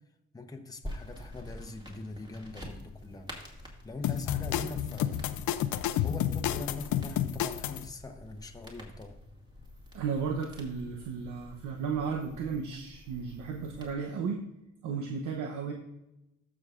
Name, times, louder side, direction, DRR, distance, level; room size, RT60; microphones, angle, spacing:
voice 1, 0.3-3.4 3.8-5.3 6.0-9.2, left 3 dB, 10° left, 4 dB, 0.9 m, -42 dB
sound 1, 0.8-13.9, left 1 dB, 15° right, 2.1 m, -48 dB
sound 2, 4.0-7.8, left 11 dB, 75° left, 0.6 m, -30 dB
voice 2, 9.9-14.5 14.8-15.7, right 6 dB, 90° right, 2 dB, 0.9 m, -34 dB
13.5 x 6.2 x 2.5 m, 0.93 s
cardioid pair, 90°, 30 cm